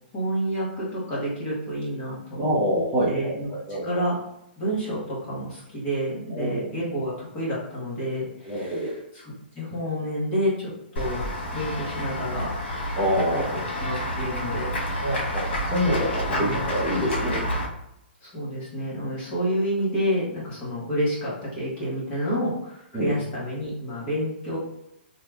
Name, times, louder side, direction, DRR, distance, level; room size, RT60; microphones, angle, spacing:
voice 1, 0.1-2.5 3.1-3.5 3.8-4.2 4.6-8.9 9.5-11.3 11.5-12.5 13.3-14.7 16.3-16.6 18.2-24.6, equal, 20° left, -7 dB, 1.2 m, -29 dB
voice 2, 2.4-3.3 3.7-3.8 6.3-6.6 8.4-8.9 12.9-13.5 15.0-15.5 15.7-17.4 22.9-23.1, equal, 10° right, -10 dB, 0.8 m, -25 dB
Run / Walk footsteps / Bell, 11.0-17.7, equal, 75° left, 1.3 m, -29 dB
2.8 x 2.4 x 3.4 m, 0.80 s
hypercardioid pair, 165°, 6 cm